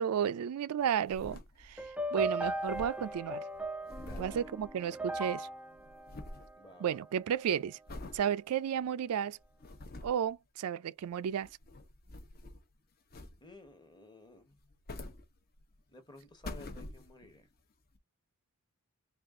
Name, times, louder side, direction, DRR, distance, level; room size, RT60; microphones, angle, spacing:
voice 1, 0.0-1.8 2.1-3.4 4.2-5.5 6.8-7.8 8.1-9.4 10.0-11.5, right 8 dB, 85° right, 0.3 m, -33 dB
sound 1, 0.8-2.0 2.2-2.3 2.5-5.3 5.5-6.5 7.0-7.3 7.9-8.2 8.8-8.9 9.4-10.3 11.3-12.7 13.1-13.7 14.5-15.8 16.2-17.4 17.9-18.0, left 2 dB, 45° left, 0.8 m, -47 dB
sound 2, 1.8-7.1, right 1 dB, 5° right, 0.3 m, -38 dB
voice 2, 4.0-4.4 6.6-7.0 13.4-14.6 15.9-17.5, left 2 dB, 20° left, 1.1 m, -54 dB
4.1 x 2.4 x 3.6 m
head